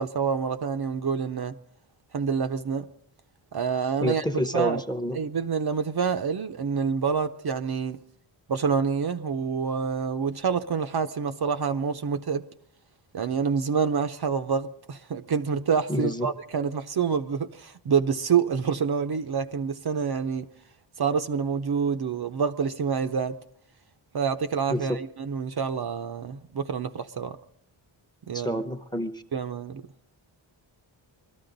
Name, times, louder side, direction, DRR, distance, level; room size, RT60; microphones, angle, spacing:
voice 1, 0.0-1.5 2.1-2.9 3.5-4.2 4.5-4.8 5.1-8.0 8.5-12.4 13.1-20.5 21.0-23.4 24.1-27.4 28.3-28.6 29.3-29.8, right 6 dB, 50° right, 0.6 m, -27 dB
voice 2, 4.0-5.2 15.9-16.3 24.7-25.0 28.3-29.2, equal, 10° left, 0.8 m, -28 dB
22.0 x 13.5 x 3.9 m
wide cardioid pair, 145°, 49 cm